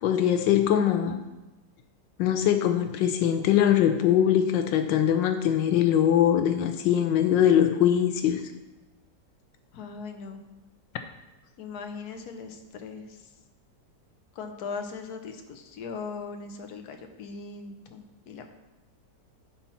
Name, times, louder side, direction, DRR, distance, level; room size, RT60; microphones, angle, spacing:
voice 1, 0.0-1.2 2.2-8.4, left 10 dB, 85° left, 7 dB, 1.3 m, -22 dB
voice 2, 9.7-10.4 11.6-13.3 14.3-18.5, left 5 dB, 60° left, 5 dB, 1.4 m, -39 dB
11.0 x 4.5 x 5.7 m, 1.1 s
omnidirectional pair, 2.0 m